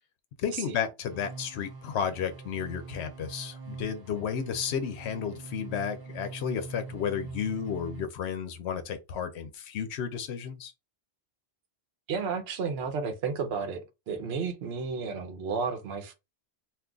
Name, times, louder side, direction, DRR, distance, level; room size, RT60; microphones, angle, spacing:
voice 1, 0.4-10.7, left 7 dB, 85° left, 0.8 m, -32 dB
sound 1, 1.1-8.1, right 4 dB, 30° right, 0.4 m, -43 dB
voice 2, 12.1-13.8 14.1-16.1, right 5 dB, 75° right, 0.9 m, -32 dB
2.5 x 2.3 x 3.7 m
omnidirectional pair, 1.1 m